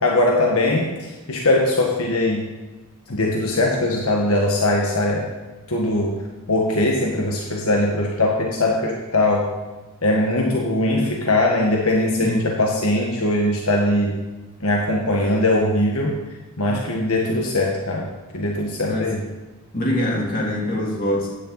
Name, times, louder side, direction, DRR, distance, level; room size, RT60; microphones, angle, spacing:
voice 1, 0.0-2.5 3.1-5.3 5.7-6.2 6.5-9.5 10.0-14.2 14.6-16.2 16.6-19.2, left 1 dB, 75° left, -1 dB, 1.6 m, -21 dB
voice 2, 12.2-12.5 16.7-16.8 17.2-17.4 18.8-19.1 19.7-21.3, left 1 dB, 40° left, -3 dB, 3.2 m, -24 dB
15.0 x 10.0 x 4.1 m, 1.2 s
head